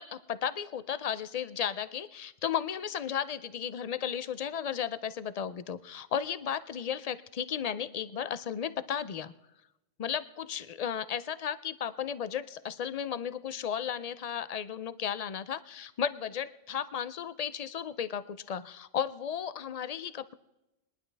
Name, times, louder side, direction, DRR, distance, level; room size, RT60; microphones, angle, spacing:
voice 1, 0.0-9.3 10.0-20.3, left 8 dB, 60° left, 14 dB, 0.4 m, -34 dB
21.5 x 11.0 x 3.4 m, 0.94 s
omnidirectional pair, 1.2 m